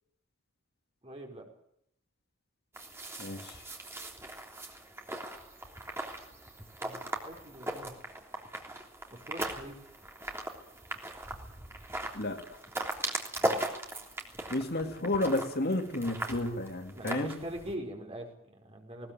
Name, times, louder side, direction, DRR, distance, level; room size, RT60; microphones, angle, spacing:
voice 1, 1.0-1.4 6.8-7.9 9.1-9.8 13.4-13.6 16.9-19.1, right 1 dB, 25° right, 2 dB, 5.3 m, -43 dB
sound 1, 2.7-17.7, right 1 dB, 10° right, 3.3 m, -39 dB
voice 2, 3.2-3.6 12.1-12.6 14.5-17.3, left 2 dB, 50° left, 5 dB, 2.3 m, -32 dB
20.5 x 19.5 x 9.3 m, 0.74 s
head